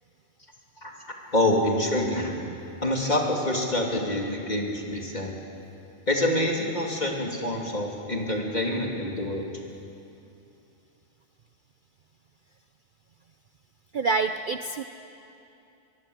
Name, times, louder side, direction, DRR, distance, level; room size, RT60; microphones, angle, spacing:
voice 1, 1.3-2.4 2.8-5.3 6.1-9.4, left 1 dB, 35° left, -1 dB, 3.3 m, -26 dB
voice 2, 13.9-14.8, right 4 dB, 50° right, 8 dB, 0.7 m, -26 dB
23.5 x 22.5 x 8.2 m, 2.7 s
omnidirectional pair, 1.3 m